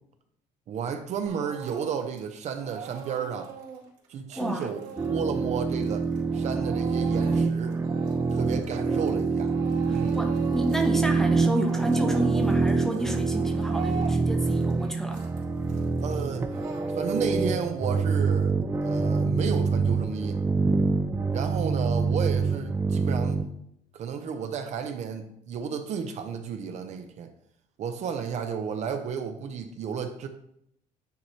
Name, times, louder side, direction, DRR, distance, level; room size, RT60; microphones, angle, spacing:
voice 1, 0.7-3.5 4.1-4.8 5.1-6.0 6.3-7.8 8.3-9.6 9.9-10.2 16.0-16.5 16.8-18.6 18.8-20.4 21.3-23.4 23.9-27.3 27.8-30.3, right 6 dB, 50° right, 7 dB, 0.7 m, -32 dB
Speech / Crying sobbing, 1.3-2.3 2.6-9.2 9.5-10.9 11.2-17.4, right 6 dB, 85° right, 2.4 m, -42 dB
voice 2, 4.4-4.7 9.9-15.2, equal, 5° left, 4 dB, 0.8 m, -30 dB
sound 1, 5.0-23.5, right 4 dB, 15° right, 0.4 m, -26 dB
9.4 x 3.2 x 4.2 m, 0.75 s
cardioid pair, 140°, 15 cm